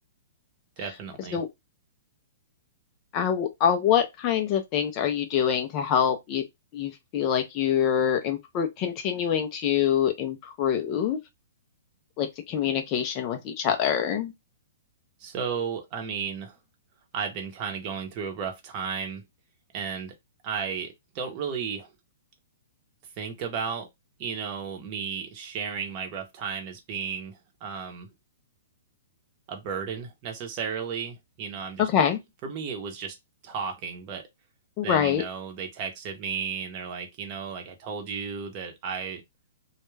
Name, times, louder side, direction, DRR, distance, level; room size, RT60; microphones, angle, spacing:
voice 1, 0.8-1.4 15.2-16.6 17.1-19.2 19.7-20.1 20.4-21.9 23.2-23.9 24.2-28.1 29.5-31.9 32.4-33.1 33.4-34.2 34.8-39.2, right 6 dB, 30° right, 0.7 m, -34 dB
voice 2, 3.1-6.4 6.7-11.2 12.2-14.3 31.8-32.2 34.8-35.2, left 8 dB, 30° left, 0.4 m, -25 dB
2.2 x 2.1 x 3.1 m
hypercardioid pair, 160°, 0 cm